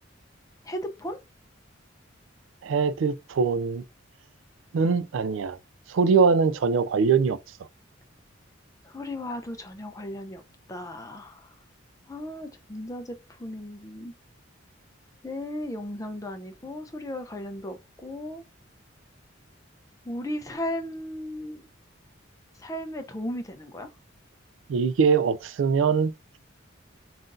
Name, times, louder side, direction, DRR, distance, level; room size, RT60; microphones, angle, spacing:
voice 1, 0.6-1.2 8.8-10.4 10.7-11.5 12.1-14.1 15.2-18.4 20.0-21.7 22.6-23.9, left 1 dB, 15° left, 0.5 m, -36 dB
voice 2, 2.6-3.8 4.7-5.6 5.9-7.4 24.7-26.1, right 5 dB, 75° right, 0.4 m, -22 dB
5.6 x 2.5 x 2.5 m
head